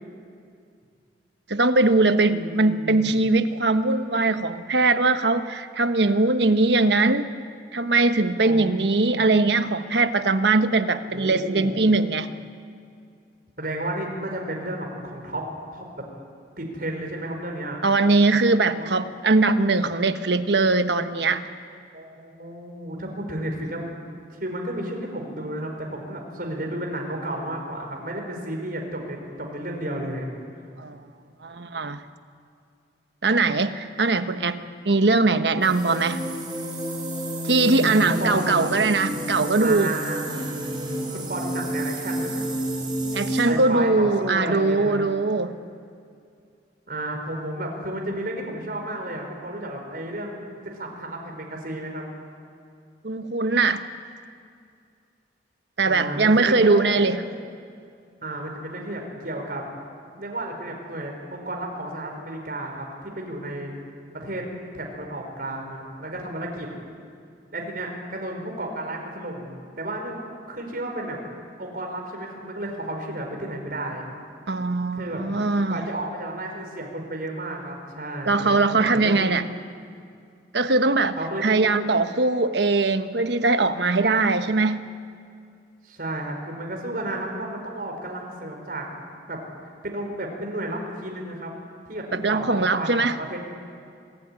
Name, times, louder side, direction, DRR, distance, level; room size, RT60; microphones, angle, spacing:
voice 1, 1.5-7.3 7.7-12.3 17.8-21.5 30.8-31.0 31.4-32.0 33.2-36.2 37.4-39.9 43.1-45.5 53.0-53.8 55.8-57.2 74.5-75.9 78.3-79.5 80.5-81.2 81.4-84.8 92.1-93.1, right 3 dB, 75° right, 9 dB, 1.2 m, -21 dB
voice 2, 2.3-3.2 8.4-9.4 11.1-11.8 13.6-15.4 15.7-16.0 16.6-17.8 18.7-18.9 21.9-23.9 24.3-30.3 37.7-38.7 39.1-39.3 39.6-40.4 41.1-42.6 43.5-45.0 46.9-50.4 50.6-52.1 55.8-56.9 58.2-59.6 60.2-63.7 64.1-64.4 64.7-66.7 67.5-70.2 70.5-71.2 71.6-74.0 74.9-75.2 75.7-79.3 81.1-81.5 85.8-88.9 89.3-91.5 91.9-93.4, right 1 dB, 55° right, 2 dB, 5.0 m, -32 dB
sound 1, 35.6-43.4, equal, 25° right, 5.5 m, -30 dB
26.0 x 18.5 x 9.9 m, 2.3 s
head